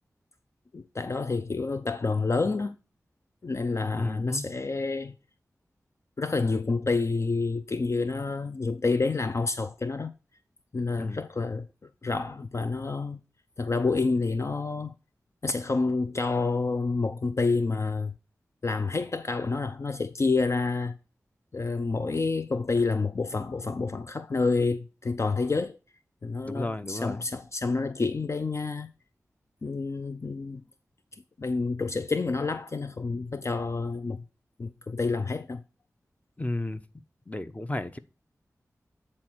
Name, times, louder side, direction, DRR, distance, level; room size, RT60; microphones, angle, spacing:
voice 1, 0.7-2.7 3.4-5.1 6.2-10.1 10.7-11.7 12.0-13.2 13.6-14.9 15.4-18.1 18.6-21.0 21.5-25.8 26.2-28.9 29.6-30.6 31.1-34.2 34.6-35.6, left 3 dB, 50° left, 0.6 m, -28 dB
voice 2, 3.9-4.5 11.0-11.3 26.4-27.2 36.4-36.8 37.3-38.0, left 2 dB, 25° left, 0.9 m, -33 dB
9.5 x 4.3 x 4.6 m
cardioid pair, 40°, 6 cm